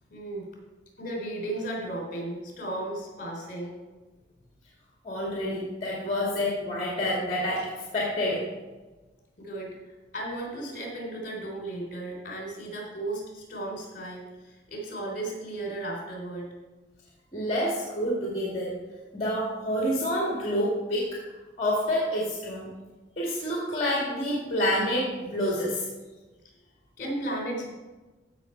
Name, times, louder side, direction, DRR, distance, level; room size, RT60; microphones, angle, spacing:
voice 1, 0.1-0.5 1.0-3.8 9.4-16.5 27.0-27.7, right 1 dB, 45° left, 0 dB, 3.5 m, -35 dB
voice 2, 5.0-8.5 17.3-18.8 19.1-21.2 21.6-22.7 23.2-25.9, equal, 30° left, -4 dB, 2.0 m, -28 dB
14.5 x 5.9 x 4.5 m, 1.2 s
head